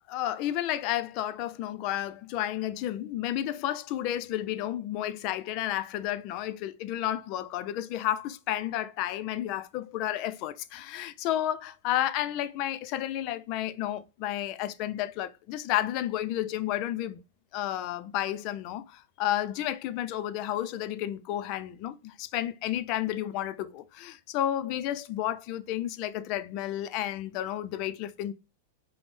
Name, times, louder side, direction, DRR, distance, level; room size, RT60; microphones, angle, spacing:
voice 1, 0.1-17.2 17.5-28.3, left 12 dB, 45° left, 0.4 m, -31 dB
5.1 x 2.0 x 3.2 m
hypercardioid pair, 135°, 0 cm